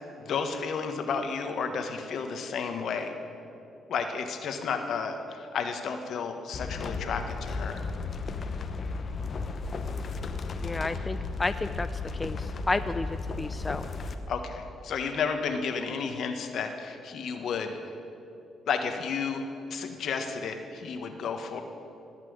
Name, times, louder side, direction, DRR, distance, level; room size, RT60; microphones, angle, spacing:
voice 1, 0.1-3.1 3.9-7.8 14.3-17.8 18.7-19.4 19.7-21.6, left 5 dB, 65° left, 6 dB, 1.4 m, -32 dB
sound 1, 6.5-14.1, left 4 dB, 45° left, 1.0 m, -34 dB
voice 2, 10.6-11.9 12.2-13.1 13.4-13.8, left 3 dB, 20° left, 10 dB, 0.4 m, -31 dB
18.0 x 6.1 x 9.5 m, 2.7 s
cardioid pair, 90°, 0 cm